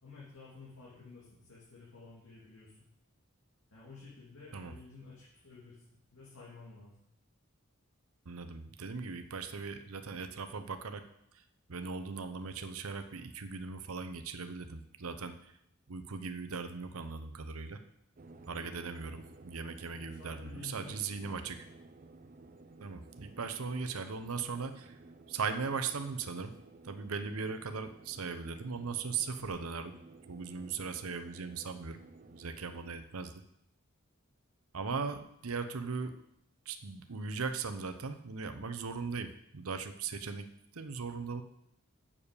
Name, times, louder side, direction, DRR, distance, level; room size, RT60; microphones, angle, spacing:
voice 1, 0.0-2.8 3.7-5.8 6.1-7.1 20.1-21.5, left 3 dB, 70° left, -7 dB, 2.8 m, -52 dB
voice 2, 8.3-11.0 11.3-11.4 11.7-15.5 15.9-17.8 18.5-21.6 22.8-25.0 25.3-26.5 26.8-29.9 30.3-32.0 32.3-33.4 34.7-36.2 36.7-41.4, right 5 dB, 80° right, 9 dB, 0.8 m, -39 dB
sound 1, 18.1-33.0, right 3 dB, 40° right, 0.5 m, -55 dB
7.1 x 7.1 x 6.7 m, 0.77 s
head